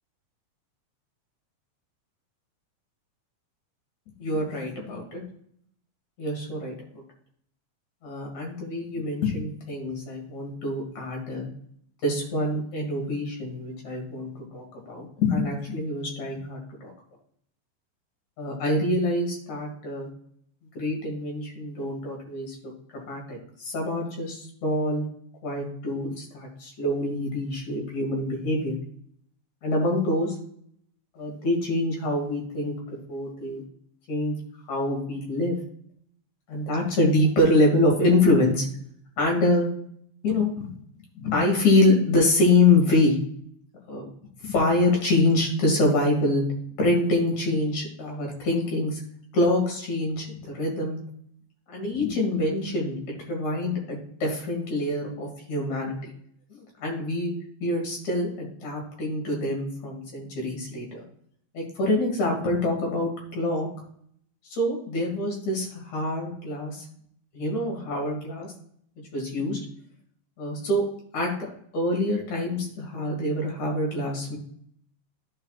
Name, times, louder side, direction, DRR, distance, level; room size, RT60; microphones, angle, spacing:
voice 1, 4.2-5.2 6.2-6.7 8.0-11.5 12.0-16.9 18.4-20.1 20.8-22.6 23.1-25.0 25.4-28.8 29.6-30.4 31.2-32.7 33.1-33.6 34.1-34.4 34.7-35.5 36.5-38.7 39.2-39.7 40.2-40.7 41.2-43.2 43.9-44.1 44.4-46.4 46.8-49.0 49.3-51.0 51.7-56.0 56.5-57.3 57.6-61.0 61.5-63.7 64.5-66.9 67.3-68.5 69.1-69.6 70.4-70.9 71.1-71.3 71.7-74.4, left 2 dB, 70° left, 0 dB, 3.6 m, -25 dB
14.5 x 4.9 x 2.4 m, 0.67 s
omnidirectional pair, 3.4 m